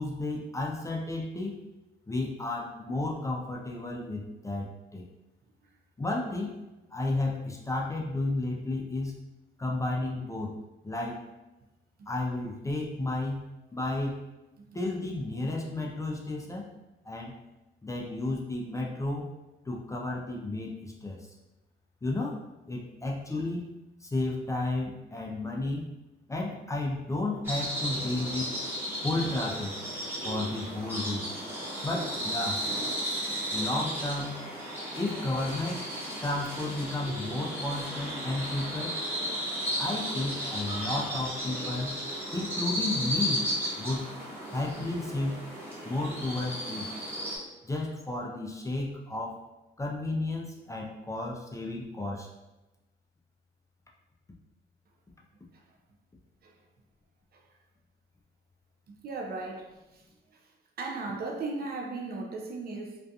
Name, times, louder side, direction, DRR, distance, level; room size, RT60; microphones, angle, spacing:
voice 1, 0.0-1.6 2.1-5.1 6.0-6.5 6.9-9.2 9.6-10.6 10.8-11.2 12.1-13.4 13.7-14.2 14.7-16.7 17.0-17.4 17.8-19.3 19.7-21.3 22.0-22.4 22.7-23.7 24.0-25.9 26.3-28.5 29.0-29.8 30.2-31.3 31.8-32.6 33.5-34.4 34.9-35.8 36.2-39.0 39.8-42.0 42.3-43.5 43.8-44.1 44.5-45.4 45.8-46.9 47.6-49.4 49.8-52.3, left 2 dB, 15° left, -2 dB, 0.4 m, -32 dB
sound 1, 27.4-47.4, equal, 10° right, 0.9 m, -34 dB
voice 2, 58.9-60.0 60.8-63.0, right 3 dB, 50° right, 2 dB, 0.5 m, -36 dB
2.4 x 2.2 x 2.7 m, 1.0 s
cardioid pair, 90°, 20 cm